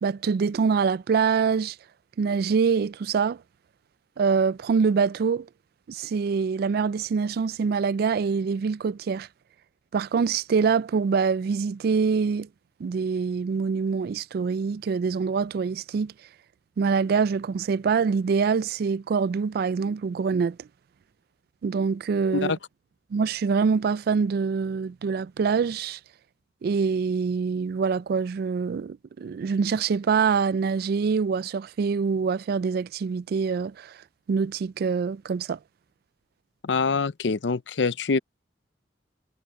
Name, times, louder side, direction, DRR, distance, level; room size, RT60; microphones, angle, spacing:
voice 1, 0.0-1.8 2.2-3.4 4.2-5.5 5.9-9.3 9.9-12.5 12.8-16.1 16.8-20.7 21.6-22.5 23.1-26.0 26.6-33.9 34.3-35.6, right 5 dB, 60° right, 0.3 m, -25 dB
voice 2, 36.6-38.2, left 4 dB, 85° left, 0.6 m, -25 dB
head